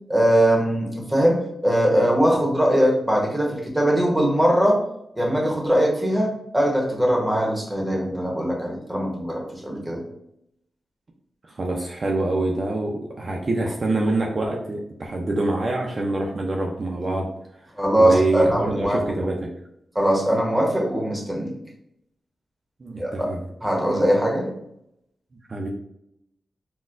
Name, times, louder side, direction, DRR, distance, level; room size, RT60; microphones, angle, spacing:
voice 1, 0.1-4.8 5.2-10.0 17.8-19.0 19.9-21.5 23.0-23.1 23.6-24.5, right 1 dB, 10° right, -1 dB, 1.0 m, -21 dB
voice 2, 11.5-17.3 18.0-19.5 22.8-23.4 25.5-25.7, right 2 dB, 45° right, 0 dB, 0.5 m, -25 dB
4.0 x 2.2 x 2.5 m, 0.78 s
cardioid pair, 65°, 0 cm